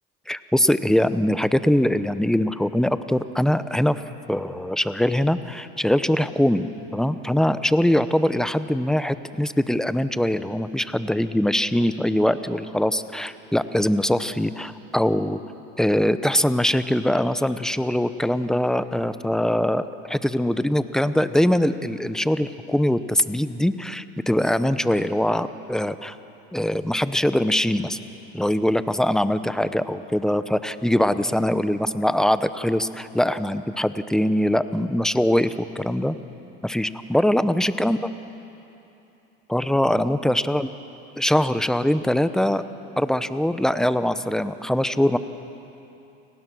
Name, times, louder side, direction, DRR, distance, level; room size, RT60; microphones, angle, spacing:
voice 1, 0.3-4.0 4.3-6.7 6.9-15.4 15.8-26.2 26.5-28.0 28.3-36.2 36.6-38.1 39.5-40.7 41.2-42.6 43.0-45.2, left 1 dB, ahead, 12 dB, 0.8 m, -22 dB
29.5 x 18.5 x 6.2 m, 2.9 s
supercardioid pair, 95°, 30 cm